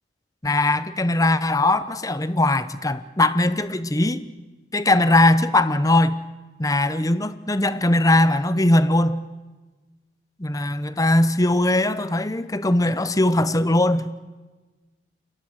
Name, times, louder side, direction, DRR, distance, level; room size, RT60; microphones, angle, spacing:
voice 1, 0.4-4.2 4.7-6.2 6.6-9.2 10.4-14.1, left 1 dB, 20° left, 0.8 m, -20 dB
29.0 x 22.0 x 6.4 m
head